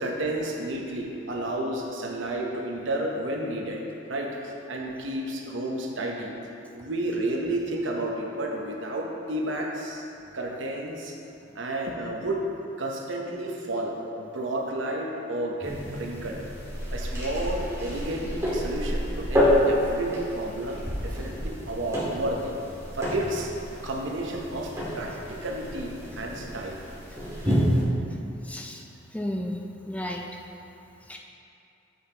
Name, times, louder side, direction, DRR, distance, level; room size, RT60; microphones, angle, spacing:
voice 1, 0.0-3.8 4.1-6.3 6.7-10.0 10.3-11.2 11.5-12.4 12.8-16.4 16.9-22.5 22.9-23.5 23.8-26.8 27.3-27.4, right 1 dB, 80° right, 0 dB, 0.9 m, -31 dB
sound 1, 15.6-27.8, equal, 15° right, 1.7 m, -29 dB
voice 2, 28.5-28.8 29.1-30.3 31.1-31.2, left 1 dB, 5° left, 1 dB, 0.3 m, -33 dB
7.9 x 6.5 x 2.9 m, 2.7 s
head